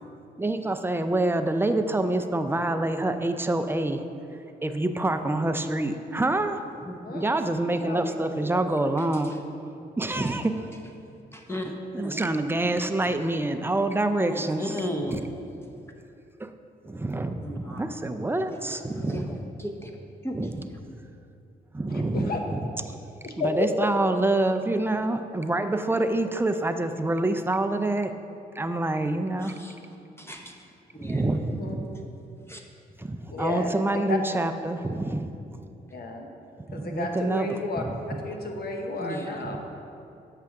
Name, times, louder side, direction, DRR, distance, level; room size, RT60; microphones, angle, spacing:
voice 1, 0.4-4.0 4.6-6.6 7.1-9.3 10.0-10.5 11.9-15.2 16.4-16.5 16.8-19.4 20.3-20.7 21.7-22.6 22.9-23.0 23.4-28.1 28.6-29.5 31.0-31.9 33.0-35.3 36.7-38.2 39.4-39.6, right 2 dB, 10° right, 8 dB, 0.5 m, -27 dB
voice 2, 11.3-12.3 14.2-15.2 17.4-17.8 18.5-18.8 19.0-19.9 20.2-20.5 29.4-29.8 30.2-30.5 30.9-31.2 32.5-32.6 39.0-39.5, equal, 15° left, 1 dB, 0.8 m, -35 dB
voice 3, 23.2-23.7 31.2-31.7 33.3-34.2 35.9-36.3 36.7-39.6, left 2 dB, 55° left, 3 dB, 1.0 m, -32 dB
7.5 x 5.7 x 3.6 m, 2.6 s
supercardioid pair, 50°, 19 cm